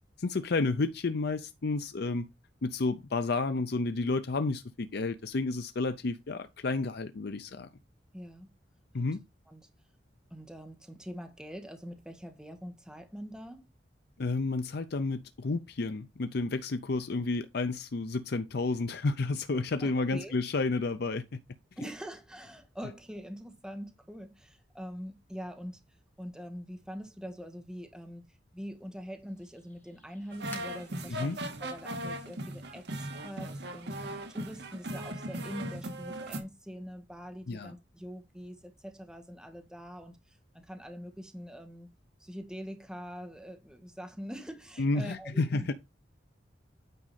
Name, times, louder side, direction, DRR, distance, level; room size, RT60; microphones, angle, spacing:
voice 1, 0.2-2.3 2.6-7.7 8.9-9.2 14.2-21.4 31.1-31.4 37.5-37.7 44.8-45.7, left 3 dB, 60° left, 0.6 m, -31 dB
voice 2, 8.1-8.5 9.0-9.1 9.5-9.7 10.3-13.6 19.8-20.3 21.8-25.8 26.2-28.3 28.5-41.9 42.2-45.7, equal, 5° right, 1.4 m, -44 dB
sound 1, 28.6-33.8, left 2 dB, 10° left, 2.6 m, -57 dB
sound 2, 30.3-36.4, right 1 dB, 65° right, 1.6 m, -38 dB
9.2 x 5.0 x 4.2 m
head